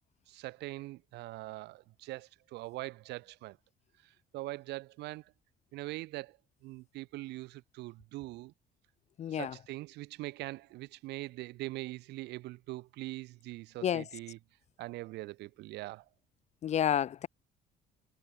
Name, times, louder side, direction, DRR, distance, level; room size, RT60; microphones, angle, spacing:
voice 1, 0.3-3.6 4.0-5.3 5.7-6.4 6.6-8.5 9.3-14.4 14.8-16.0, right 19 dB, 85° right, 2.1 m, -42 dB
voice 2, 9.2-9.5 13.8-14.0 16.6-17.3, left 9 dB, 40° left, 0.4 m, -30 dB
cardioid pair, 110°, 17 cm